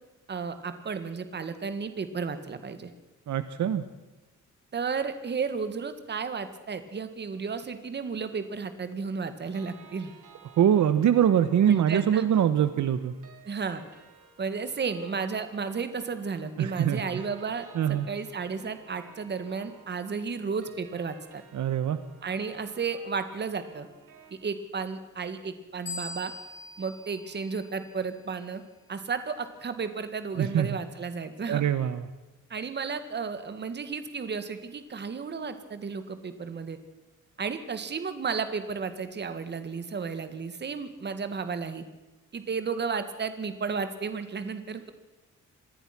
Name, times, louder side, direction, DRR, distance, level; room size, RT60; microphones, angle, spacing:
voice 1, 0.3-2.9 4.7-10.1 11.7-12.3 13.4-13.8 14.4-21.4 22.2-23.9 24.3-26.3 26.8-28.6 28.9-31.6 32.5-36.8 37.4-41.8 42.3-44.9, right 5 dB, 35° right, 10 dB, 1.9 m, -33 dB
voice 2, 3.3-3.8 10.6-13.1 16.6-17.2 17.7-18.1 21.5-22.0 30.4-30.7 31.5-32.0, right 9 dB, 65° right, 12 dB, 1.1 m, -23 dB
sound 1, 9.5-24.3, right 7 dB, 85° right, 4.8 m, -55 dB
sound 2, 25.9-28.3, left 3 dB, 35° left, 3.3 m, -42 dB
26.5 x 20.0 x 6.0 m, 1.1 s
wide cardioid pair, 175°, 31 cm